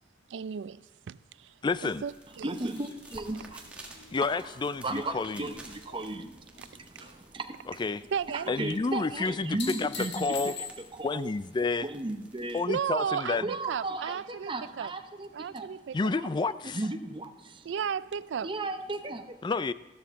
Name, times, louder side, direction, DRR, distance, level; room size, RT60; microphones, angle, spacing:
voice 1, 0.3-1.5 1.8-2.6 8.1-8.6 12.7-14.9 15.3-16.1 17.7-18.5, right 7 dB, 80° right, 0.4 m, -34 dB
voice 2, 1.6-2.0 4.1-5.5 7.8-8.0 8.5-10.6 11.0-11.9 12.5-13.5 15.9-16.8 19.4-19.7, left 4 dB, 25° left, 0.3 m, -30 dB
sound 1, 1.7-12.6, right 2 dB, 5° right, 1.6 m, -54 dB
voice 3, 2.4-4.5 4.8-7.8 8.3-11.3 11.8-12.6 13.3-15.7 16.1-17.7 18.4-19.4, right 2 dB, 30° right, 0.7 m, -36 dB
sound 2, 2.7-6.2 6.5-7.1 9.2-11.1 13.7-13.8, left 6 dB, 65° left, 1.6 m, -44 dB
13.5 x 12.5 x 3.6 m
head